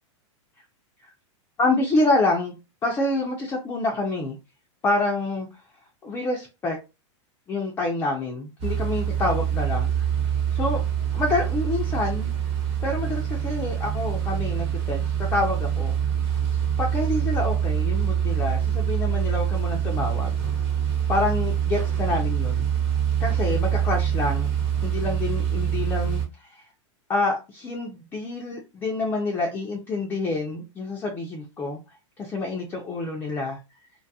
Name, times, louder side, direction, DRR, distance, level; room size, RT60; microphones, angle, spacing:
voice 1, 1.6-2.5 2.8-4.4 4.8-5.5 6.0-6.8 7.5-10.1 10.5-10.8 11.1-12.3 12.8-15.9 16.3-16.4 16.8-20.3 21.1-22.7 23.2-24.5 24.8-26.6 27.1-31.8 32.2-33.6, left 2 dB, 15° left, 0.4 m, -27 dB
sound 1, 8.6-26.3, right 9 dB, 35° right, 0.9 m, -25 dB
2.5 x 2.3 x 2.6 m
supercardioid pair, 140°, 16 cm